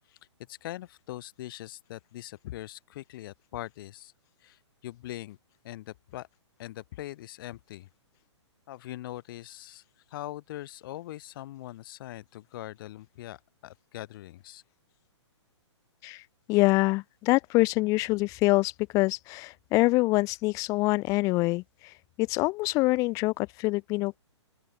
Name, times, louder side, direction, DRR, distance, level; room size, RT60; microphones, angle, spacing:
voice 1, 0.5-4.1 4.4-5.4 5.6-6.3 6.6-7.9 8.7-9.8 10.1-14.6, left 15 dB, 45° left, 1.4 m, -41 dB
voice 2, 16.5-21.6 22.2-24.2, left 22 dB, 20° left, 0.4 m, -25 dB
open air
hypercardioid pair, 130°, 15 cm